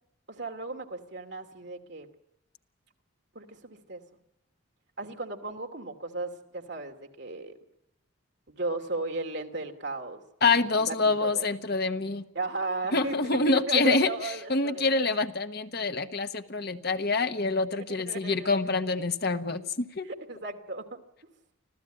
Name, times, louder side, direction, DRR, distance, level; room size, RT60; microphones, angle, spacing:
voice 1, 0.3-2.1 3.3-4.0 5.0-7.5 8.5-10.2 10.6-11.5 12.3-14.9 17.7-18.5 20.0-21.0, right 2 dB, 55° right, 4 dB, 2.6 m, -35 dB
voice 2, 10.4-12.2 12.9-14.1 14.5-20.1, left 3 dB, 50° left, 9 dB, 1.2 m, -26 dB
25.5 x 16.0 x 9.0 m, 0.83 s
head